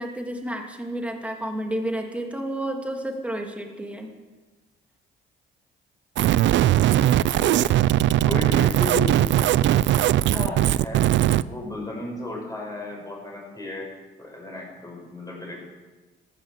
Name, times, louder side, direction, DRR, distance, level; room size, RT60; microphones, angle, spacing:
voice 1, 0.0-4.1, right 1 dB, 5° right, 2 dB, 2.5 m, -31 dB
sound 1, 6.2-11.4, right 12 dB, 70° right, 0.4 m, -19 dB
voice 2, 6.8-7.6 8.0-9.3 10.3-11.1 11.5-13.9 14.2-15.7, left 2 dB, 20° left, -1 dB, 6.2 m, -34 dB
14.5 x 11.0 x 6.6 m, 1.3 s
cardioid pair, 90°, 20 cm